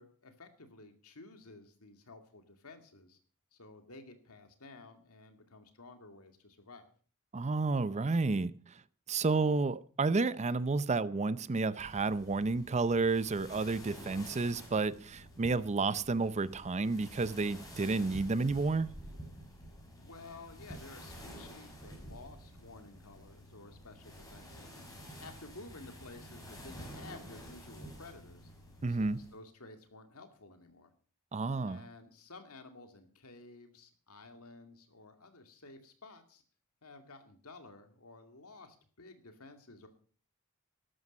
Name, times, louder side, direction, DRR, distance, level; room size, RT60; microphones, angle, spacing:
voice 1, 0.0-3.2 3.5-6.9 20.0-24.8 25.2-28.5 28.9-30.9 31.6-36.4 36.8-39.9, left 3 dB, 70° left, 2.4 m, -53 dB
voice 2, 7.3-8.8 9.1-18.9 28.8-29.2 31.3-31.8, right 3 dB, 30° right, 0.5 m, -31 dB
sound 1, 11.8-29.4, equal, 15° left, 4.8 m, -50 dB
13.0 x 12.0 x 5.4 m
head